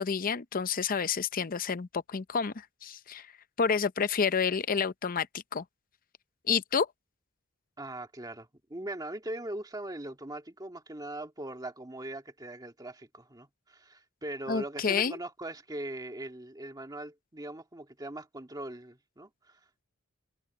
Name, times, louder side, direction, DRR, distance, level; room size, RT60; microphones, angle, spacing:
voice 1, 0.0-3.3 3.6-5.6 6.5-6.9 14.5-15.2, left 6 dB, 45° left, 0.6 m, -29 dB
voice 2, 7.8-19.8, right 1 dB, 20° right, 1.9 m, -41 dB
head